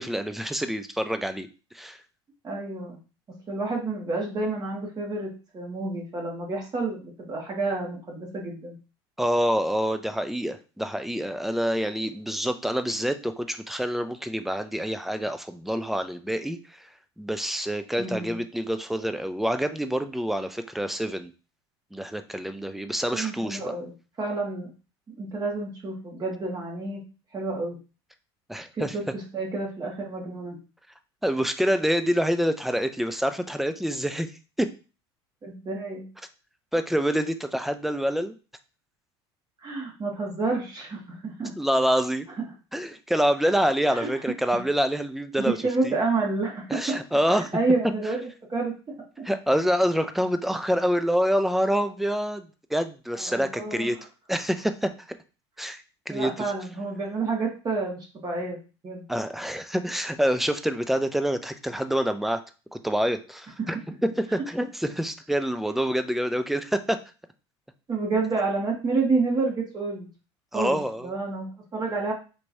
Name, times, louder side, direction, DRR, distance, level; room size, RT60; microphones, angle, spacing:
voice 1, 0.0-1.5 1.7-2.0 9.2-16.9 17.2-21.3 21.9-23.7 28.5-28.9 31.2-34.3 34.6-34.7 36.7-38.3 41.6-42.3 42.7-45.6 45.8-46.0 46.7-47.5 49.2-54.0 54.3-54.9 55.6-56.5 59.1-62.4 62.7-63.8 64.2-67.0 70.5-71.1, equal, ahead, 9 dB, 0.4 m, -26 dB
voice 2, 2.4-3.0 3.5-8.7 18.0-18.4 23.1-23.9 24.2-24.7 25.1-27.0 27.3-27.8 28.7-30.6 35.4-36.1 39.6-41.5 43.9-44.1 45.4-47.0 47.3-48.2 48.5-48.7 53.1-53.9 56.1-58.6 58.8-59.0 63.6-63.7 67.9-70.1 70.5-70.8 71.0-72.1, right 3 dB, 30° right, -1 dB, 1.5 m, -29 dB
4.5 x 3.0 x 2.6 m, 0.34 s
hypercardioid pair, 85°, 14 cm